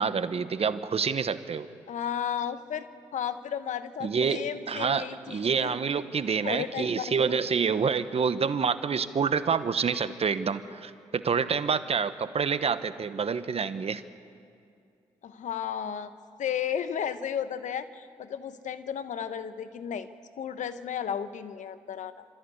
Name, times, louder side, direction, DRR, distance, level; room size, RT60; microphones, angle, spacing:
voice 1, 0.0-1.7 4.0-14.0, right 6 dB, 50° right, 13 dB, 1.0 m, -27 dB
voice 2, 1.9-5.7 6.4-7.4 15.2-16.1 16.4-20.1 20.4-22.2, left 8 dB, 70° left, 12 dB, 1.0 m, -34 dB
26.5 x 14.0 x 8.3 m, 2.4 s
supercardioid pair, 45°, 13 cm